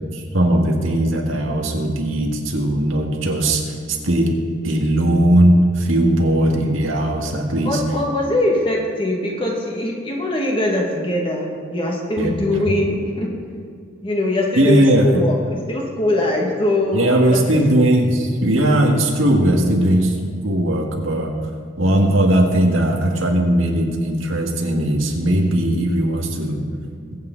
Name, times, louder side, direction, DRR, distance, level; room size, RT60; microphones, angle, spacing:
voice 1, 0.1-4.3 4.6-7.8 12.2-12.4 14.6-15.2 16.9-20.2 20.4-21.3 21.8-26.6, right 1 dB, 75° right, 1 dB, 2.0 m, -18 dB
voice 2, 7.7-13.3 14.0-17.6, left 1 dB, 25° left, -1 dB, 2.0 m, -22 dB
21.5 x 8.8 x 4.0 m, 2.2 s
head